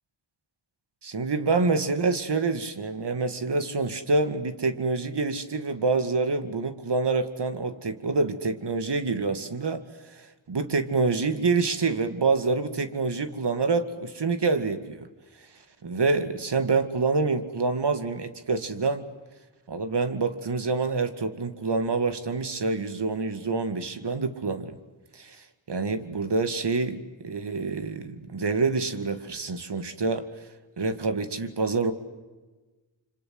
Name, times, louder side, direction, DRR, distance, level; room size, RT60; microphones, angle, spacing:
voice 1, 1.0-9.8 10.1-15.1 15.8-19.1 19.7-24.8 25.1-30.3 30.8-31.9, right 4 dB, 55° right, 9 dB, 2.4 m, -27 dB
26.5 x 26.0 x 8.0 m, 1.2 s
cardioid pair, 45°, 48 cm